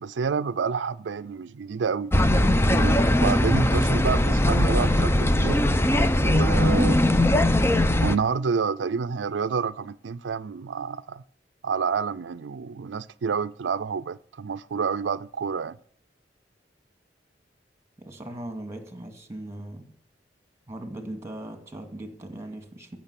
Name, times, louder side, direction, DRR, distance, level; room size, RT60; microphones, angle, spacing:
voice 1, 0.0-2.1 2.7-5.6 6.2-7.2 8.0-11.2 11.6-15.8, right 5 dB, 90° right, 0.4 m, -28 dB
sound 1, 2.1-8.2, left 1 dB, 15° left, 0.6 m, -20 dB
voice 2, 18.0-19.9 20.7-23.0, right 1 dB, 15° right, 2.2 m, -39 dB
14.5 x 6.3 x 8.3 m
head